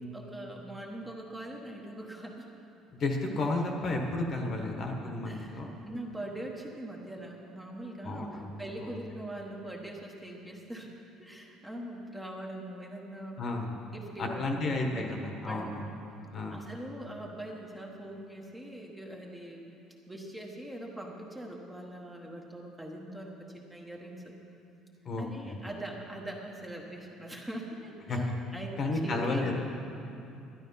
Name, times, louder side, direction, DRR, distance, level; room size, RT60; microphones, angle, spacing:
voice 1, 0.1-2.5 5.2-13.4 13.9-16.0 16.5-19.7 20.1-24.3 25.2-29.5, right 1 dB, 5° right, -1 dB, 1.1 m, -42 dB
voice 2, 2.9-5.7 8.0-8.5 8.8-8.9 13.4-13.8 14.2-15.8 16.3-16.6 25.0-25.6 28.1-28.2 28.8-29.5, left 2 dB, 35° left, 2 dB, 1.2 m, -32 dB
12.0 x 10.5 x 5.5 m, 2.7 s
cardioid pair, 155°, 0 cm